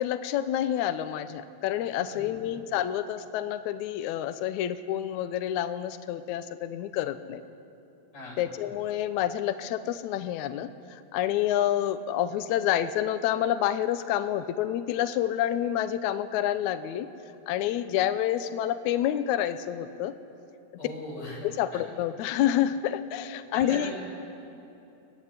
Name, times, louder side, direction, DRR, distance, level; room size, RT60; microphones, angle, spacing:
voice 1, 0.0-7.4 8.4-17.1 17.5-20.1 21.4-23.9, left 11 dB, 85° left, 10 dB, 1.7 m, -28 dB
voice 2, 2.0-2.5 8.1-8.4 20.8-21.4 23.5-24.0, left 2 dB, 45° left, -5 dB, 7.8 m, -39 dB
25.0 x 15.5 x 9.7 m, 2.9 s
omnidirectional pair, 4.3 m